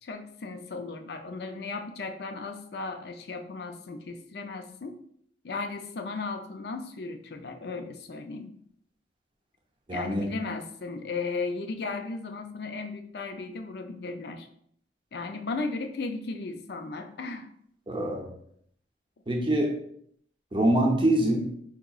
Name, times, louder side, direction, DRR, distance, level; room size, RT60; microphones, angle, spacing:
voice 1, 0.0-5.0 5.4-8.5 9.9-14.5 15.1-17.5, left 3 dB, 60° left, 5 dB, 0.4 m, -36 dB
voice 2, 9.9-10.3 17.9-18.3 19.3-19.8 20.5-21.5, right 1 dB, 25° right, 1 dB, 0.6 m, -24 dB
4.8 x 2.8 x 2.3 m, 0.65 s
head